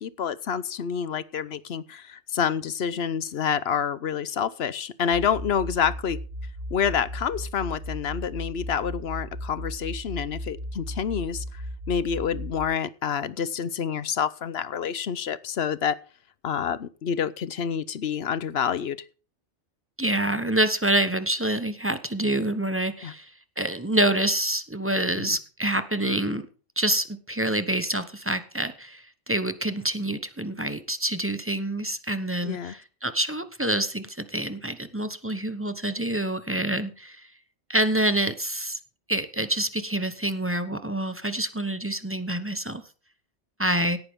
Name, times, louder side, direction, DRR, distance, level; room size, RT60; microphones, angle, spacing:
voice 1, 0.0-6.2 6.7-16.0 16.4-19.0 23.0-23.1 25.2-25.4 32.4-32.7, left 7 dB, 60° left, 17 dB, 1.0 m, -28 dB
sound 1, 5.1-12.7, equal, 40° right, 3.1 m, -36 dB
voice 2, 20.0-23.3 23.6-26.4 26.8-37.2 37.7-38.8 39.1-42.8 43.6-44.0, right 1 dB, 10° right, 10 dB, 0.9 m, -27 dB
17.0 x 9.5 x 3.7 m, 0.38 s
omnidirectional pair, 1.2 m